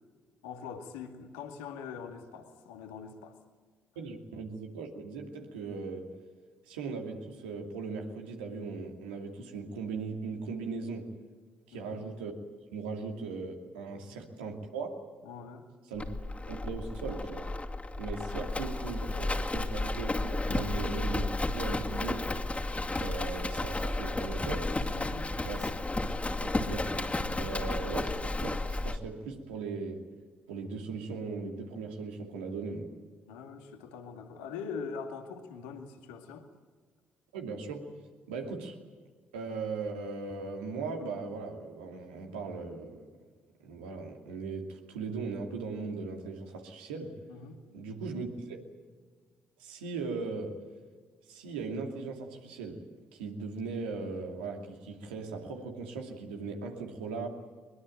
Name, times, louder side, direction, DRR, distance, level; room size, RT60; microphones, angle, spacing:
voice 1, 0.4-3.4 11.7-12.0 13.9-14.2 15.2-15.7 24.9-25.3 33.3-36.5 47.3-47.6, left 6 dB, 85° left, 4 dB, 2.2 m, -43 dB
voice 2, 4.0-6.1 6.7-11.1 11.7-12.3 12.7-15.0 15.9-16.0 16.5-17.5 18.0-22.3 23.0-24.8 25.4-25.7 26.4-30.1 30.5-32.9 37.3-38.8 39.3-43.1 43.6-47.2 47.7-48.6 49.6-50.6 51.3-52.8 53.1-57.3, right 4 dB, 90° right, 2 dB, 2.7 m, -38 dB
Livestock farm animals working animals, 16.0-29.0, left 2 dB, 25° left, 2.5 m, -33 dB
22.5 x 22.0 x 9.1 m, 1.5 s
hypercardioid pair, 45°, 5 cm